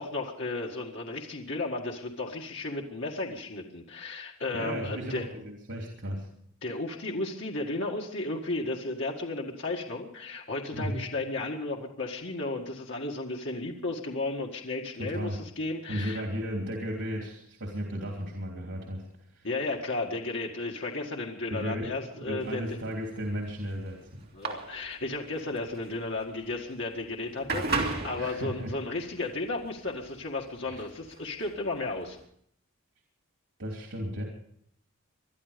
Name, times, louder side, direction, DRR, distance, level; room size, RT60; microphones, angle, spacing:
voice 1, 0.0-5.3 6.6-16.2 19.4-22.8 24.3-32.2, left 2 dB, 60° left, 0 dB, 1.8 m, -34 dB
voice 2, 4.5-6.3 10.7-11.0 15.0-15.4 15.9-19.5 21.5-24.3 28.2-28.7 30.6-30.8 33.6-34.2, equal, 85° right, 0 dB, 3.2 m, -35 dB
sound 1, 22.4-32.3, right 3 dB, 50° right, 2.4 m, -37 dB
22.0 x 12.0 x 5.2 m, 0.67 s
head